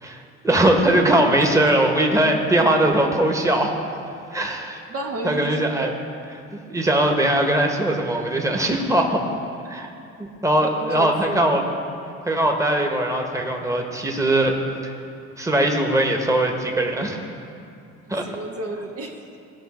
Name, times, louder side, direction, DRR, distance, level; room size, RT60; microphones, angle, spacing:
voice 1, 0.0-3.7 4.3-4.8 5.2-5.9 6.5-9.2 9.7-9.9 10.2-11.6 12.2-14.6 14.8-14.9 15.4-17.2 18.1-18.3, right 1 dB, 10° right, 2 dB, 1.3 m, -20 dB
voice 2, 1.4-1.8 4.9-5.9 10.6-11.4 18.2-19.3, right 2 dB, 50° right, 1 dB, 1.1 m, -32 dB
16.0 x 5.4 x 4.3 m, 2.6 s
supercardioid pair, 75°, 29 cm